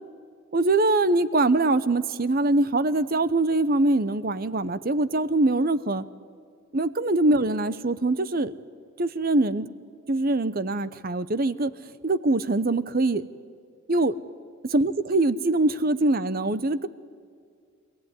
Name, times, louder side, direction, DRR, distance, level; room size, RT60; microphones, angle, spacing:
voice 1, 0.5-6.0 6.7-8.5 9.0-9.7 10.1-11.7 12.0-13.2 13.9-14.1 14.6-16.9, right 2 dB, 40° right, 15 dB, 0.7 m, -23 dB
25.5 x 17.0 x 9.7 m, 2.2 s
head